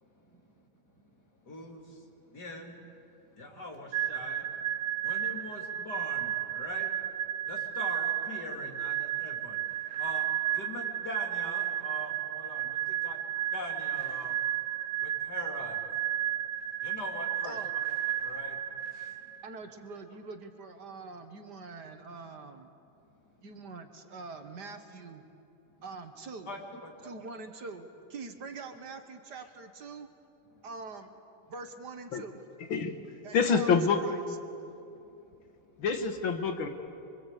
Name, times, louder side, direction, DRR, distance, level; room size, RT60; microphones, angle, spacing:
voice 1, 1.5-2.8 3.3-4.5 5.0-6.9 7.5-9.7 10.0-10.3 10.5-13.2 13.5-14.4 15.0-16.0 16.8-17.6 18.2-18.6 18.9-19.2 25.7-25.8 26.5-27.1 34.7-34.9 35.8-35.9, left 2 dB, 55° left, 1 dB, 3.5 m, -43 dB
sound 1, 3.9-19.5, right 11 dB, 85° right, 1.9 m, -33 dB
voice 2, 19.4-22.7 23.4-25.3 25.8-26.5 27.0-30.1 30.6-31.1 31.5-32.4 33.2-33.7 34.0-34.2, right 4 dB, 60° right, 6 dB, 1.9 m, -44 dB
voice 3, 33.3-34.0 35.8-36.7, left 5 dB, 80° left, 6 dB, 2.3 m, -26 dB
24.5 x 24.0 x 8.3 m, 2.7 s
omnidirectional pair, 2.1 m